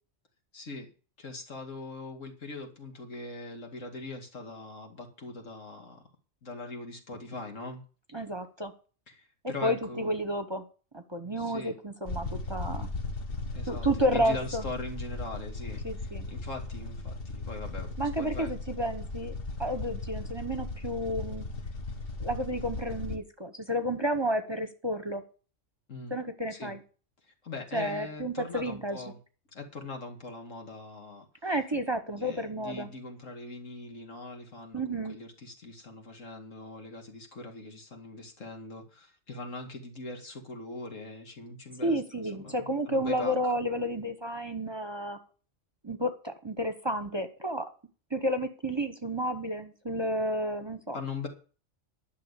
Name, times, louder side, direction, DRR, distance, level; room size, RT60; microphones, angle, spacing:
voice 1, 0.5-0.9 1.2-6.0 6.4-7.8 9.1-10.2 11.4-11.8 13.5-18.5 25.9-26.2 26.5-26.8 27.4-29.2 29.5-31.7 32.1-43.4 50.9-51.3, left 3 dB, 80° left, 3 dB, 2.6 m, -41 dB
voice 2, 8.1-8.7 9.6-10.6 10.9-12.9 13.7-14.6 15.8-16.3 18.0-19.3 19.6-21.4 22.2-25.2 26.1-26.8 27.7-29.0 31.4-32.9 34.7-35.2 41.8-45.2 45.8-47.7 48.1-51.0, equal, 25° right, 7 dB, 0.9 m, -31 dB
sound 1, 12.0-23.2, left 3 dB, 50° left, 1.2 m, -37 dB
11.0 x 6.4 x 8.2 m, 0.38 s
omnidirectional pair, 1.3 m